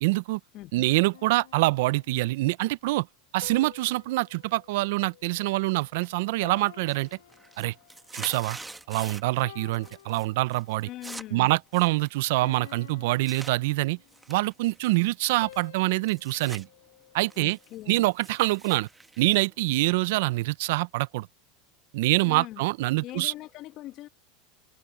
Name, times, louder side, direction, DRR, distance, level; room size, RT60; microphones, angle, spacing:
voice 1, 0.0-0.4 0.7-3.1 3.3-7.1 7.6-7.7 8.1-8.6 8.9-10.9 11.3-14.0 14.3-16.7 17.1-17.6 17.9-18.9 19.2-21.3 21.9-23.3, right 20 dB, 70° right, 0.6 m, -25 dB
voice 2, 0.5-0.8 10.8-11.5 17.4-18.1 22.2-22.6 23.0-24.1, left 15 dB, 50° left, 1.3 m, -41 dB
sound 1, 1.1-2.4 3.4-5.9 6.4-8.1 8.7-8.9 9.4-11.0 11.4-11.7 12.4-14.3 15.4-17.8, left 13 dB, 85° left, 1.1 m, -51 dB
sound 2, 6.0-6.4 6.7-9.4 9.7-10.3 10.5-13.5 14.1-16.6 17.0-20.2, right 3 dB, 10° right, 1.2 m, -46 dB
hypercardioid pair, 105°, 0 cm